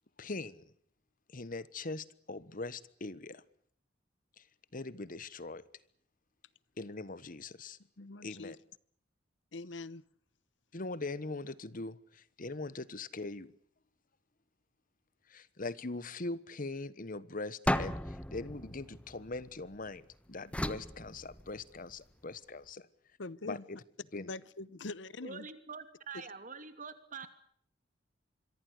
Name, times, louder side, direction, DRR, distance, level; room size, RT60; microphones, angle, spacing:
voice 1, 0.2-0.6 1.3-3.4 4.4-4.5 4.7-5.6 6.8-7.8 8.2-8.6 10.7-13.5 15.3-22.9 23.5-23.8 24.1-24.3, left 3 dB, 50° left, 1.2 m, -41 dB
voice 2, 8.0-8.6 9.5-10.0 23.2-23.6 24.1-25.5, left 3 dB, 85° left, 1.0 m, -43 dB
sound 1, 17.7-19.9 20.5-21.9, left 1 dB, 5° left, 1.2 m, -36 dB
voice 3, 25.2-27.3, right 5 dB, 45° right, 2.9 m, -45 dB
26.5 x 23.5 x 6.5 m
head